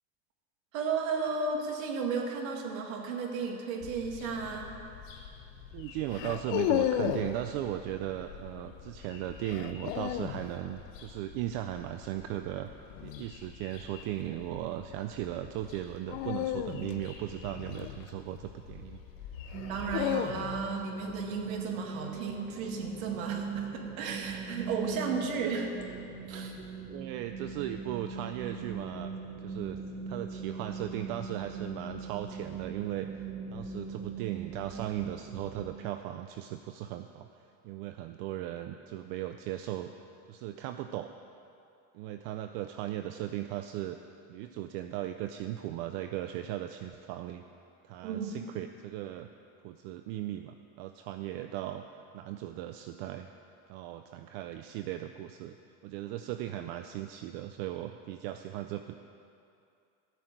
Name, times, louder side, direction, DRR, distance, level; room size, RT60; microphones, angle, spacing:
voice 1, 0.7-4.7 19.7-25.7 26.3-26.6 48.0-48.5, right 5 dB, 85° right, 2 dB, 2.0 m, -34 dB
sound 1, 3.8-20.0, left 6 dB, 80° left, 3.1 m, -49 dB
sound 2, 4.3-4.6 6.1-7.4 9.5-10.5 12.9-13.3 16.1-18.5 19.5-20.8, left 11 dB, 55° left, 0.6 m, -33 dB
voice 2, 5.7-12.7 13.0-19.0 26.9-29.1 29.4-29.8 30.1-33.2 33.5-37.3 37.6-39.9 40.3-41.1 41.9-44.0 44.3-47.4 47.8-49.3 49.6-51.8 52.1-53.3 53.7-55.6 55.8-59.0, right 13 dB, 50° right, 8 dB, 0.5 m, -37 dB
sound 3, 19.5-35.7, right 5 dB, 30° right, 1.3 m, -40 dB
12.5 x 6.3 x 9.0 m, 2.5 s
supercardioid pair, 160°, 39 cm